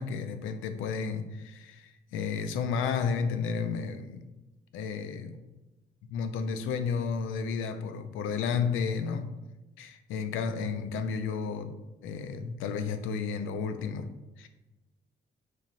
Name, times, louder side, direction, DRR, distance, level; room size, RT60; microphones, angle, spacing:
voice 1, 0.0-4.3 4.7-5.4 6.1-9.3 9.8-11.7 12.0-14.1 14.4-14.5, left 5 dB, 85° left, 9 dB, 0.4 m, -32 dB
3.1 x 2.4 x 3.8 m, 1.0 s
cardioid pair, 90°, 20 cm